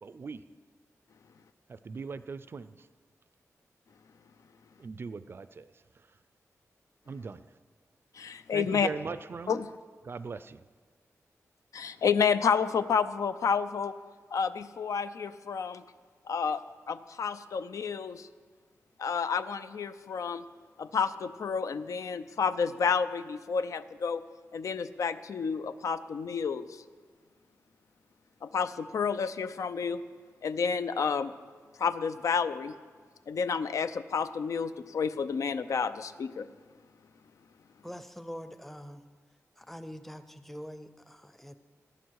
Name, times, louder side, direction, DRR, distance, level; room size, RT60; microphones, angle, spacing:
voice 1, 0.0-0.4 1.7-2.9 4.8-6.1 7.1-7.4 8.5-9.7 10.0-10.6, right 4 dB, 45° right, 14 dB, 0.4 m, -40 dB
voice 2, 8.1-8.9 9.5-9.7 11.7-13.9 14.3-15.8 16.3-16.6 16.9-18.3 19.0-20.4 20.8-24.2 24.5-26.8 28.4-30.0 30.4-31.3 31.8-32.7 33.3-36.5, left 6 dB, 75° left, 12 dB, 0.6 m, -30 dB
voice 3, 37.8-39.0 39.6-41.5, equal, 5° left, 11 dB, 0.6 m, -44 dB
17.5 x 12.5 x 4.7 m, 1.6 s
wide cardioid pair, 155°, 6 cm